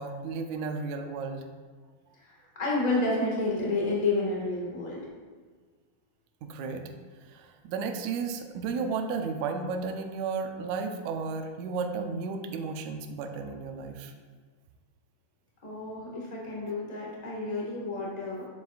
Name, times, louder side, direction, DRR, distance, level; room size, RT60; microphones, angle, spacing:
voice 1, 0.0-1.4 6.4-6.8 7.3-14.1, right 4 dB, 75° right, 4 dB, 1.8 m, -33 dB
voice 2, 2.6-5.0 15.6-18.5, left 2 dB, 30° left, -4 dB, 0.7 m, -30 dB
9.6 x 7.1 x 2.4 m, 1.4 s
omnidirectional pair, 3.8 m